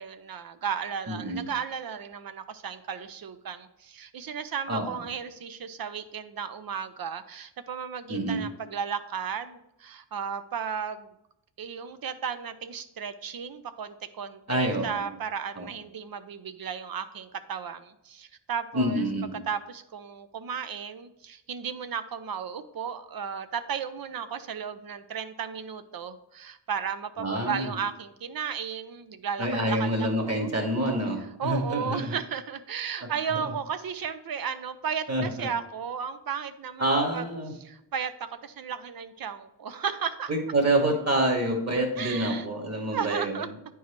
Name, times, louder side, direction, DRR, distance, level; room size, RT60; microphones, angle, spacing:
voice 1, 0.0-11.1 11.6-19.0 19.3-30.5 31.2-37.3 37.5-40.3 42.0-42.5 42.9-43.5, right 7 dB, 55° right, 11 dB, 0.6 m, -34 dB
voice 2, 1.1-1.4 4.7-4.9 8.1-8.5 14.5-15.0 15.6-15.7 18.7-19.4 27.2-27.7 29.4-32.1 35.1-35.5 36.8-37.5 40.3-43.5, right 1 dB, 35° right, 2 dB, 1.9 m, -27 dB
9.2 x 4.6 x 3.1 m, 0.83 s
cardioid pair, 90°, 43 cm